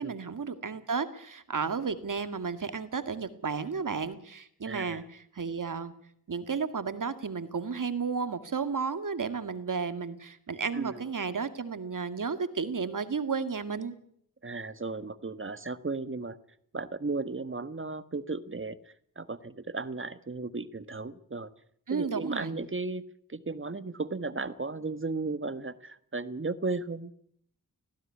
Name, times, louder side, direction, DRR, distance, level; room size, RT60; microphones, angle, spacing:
voice 1, 0.0-5.0 5.3-5.9 6.3-13.9 21.9-22.5, right 5 dB, 65° right, 11 dB, 2.1 m, -33 dB
voice 2, 4.6-5.0 10.7-11.0 14.4-16.4 16.7-21.5 21.9-23.0 23.3-27.1, right 3 dB, 35° right, 14 dB, 1.4 m, -35 dB
19.0 x 15.0 x 9.8 m, 0.67 s
cardioid pair, 55°, 34 cm